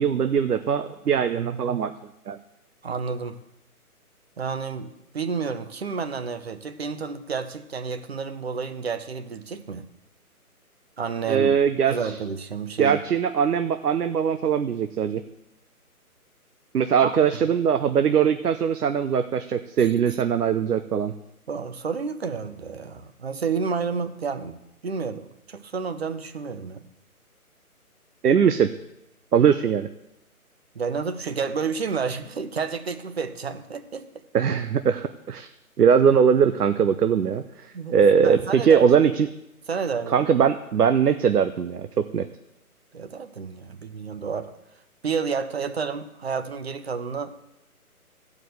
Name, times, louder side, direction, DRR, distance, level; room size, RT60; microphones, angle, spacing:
voice 1, 0.0-1.9 2.3-2.4 11.3-12.1 12.8-15.2 16.7-21.1 28.2-28.7 29.3-29.9 34.3-35.5 35.8-37.4 37.9-39.3 40.1-42.3, right 7 dB, 85° right, 9 dB, 0.8 m, -21 dB
voice 2, 2.8-3.4 4.4-9.9 11.0-11.5 11.9-13.0 17.0-17.1 21.5-26.8 30.7-34.1 37.7-38.9 39.7-40.3 42.9-44.5 45.0-47.3, right 5 dB, 45° right, 10 dB, 0.8 m, -30 dB
14.0 x 5.0 x 7.8 m, 0.89 s
hypercardioid pair, 165°, 45 cm